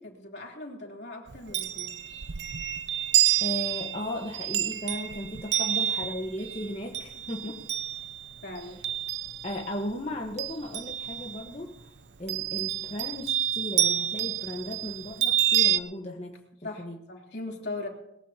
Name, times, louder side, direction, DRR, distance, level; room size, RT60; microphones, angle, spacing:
voice 1, 0.0-1.9 8.4-8.8 16.6-17.9, left 2 dB, 65° left, -1 dB, 3.3 m, -39 dB
Chime, 1.3-9.8 10.1-11.5 12.3-15.8, right 11 dB, 65° right, 0.6 m, -28 dB
voice 2, 3.4-7.6 9.4-11.9 12.2-17.0, left 1 dB, 35° left, 0 dB, 1.2 m, -36 dB
21.5 x 15.5 x 2.9 m, 0.85 s
head